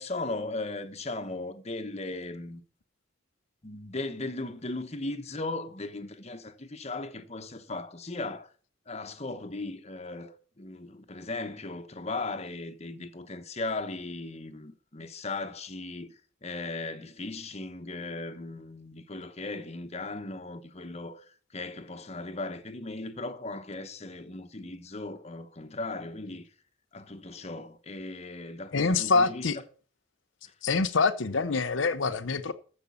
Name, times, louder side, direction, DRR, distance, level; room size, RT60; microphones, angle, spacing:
voice 1, 0.0-2.6 3.6-8.5 8.9-21.3 21.5-26.5 26.9-29.6 30.4-30.5, left 2 dB, 35° left, 1.2 m, -37 dB
voice 2, 28.7-29.6 30.6-32.5, left 4 dB, 85° left, 0.7 m, -25 dB
14.0 x 5.4 x 7.0 m
head